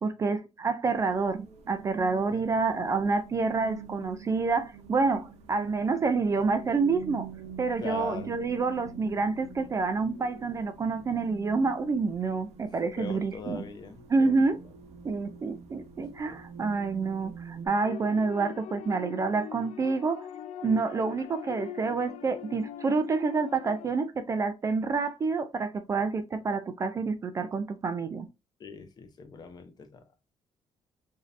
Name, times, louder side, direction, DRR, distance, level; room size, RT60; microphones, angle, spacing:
voice 1, 0.0-7.3 7.6-13.6 14.1-14.6 15.0-20.3 20.6-28.3, right 4 dB, 30° right, 0.3 m, -28 dB
sound 1, 0.9-17.7, right 6 dB, 80° right, 0.9 m, -47 dB
voice 2, 2.3-2.6 7.8-8.3 13.0-14.3 16.2-16.4 28.6-30.0, left 3 dB, 35° left, 0.7 m, -40 dB
sound 2, 17.8-23.9, left 10 dB, 85° left, 0.4 m, -42 dB
5.0 x 2.7 x 2.5 m
cardioid pair, 160°, 11 cm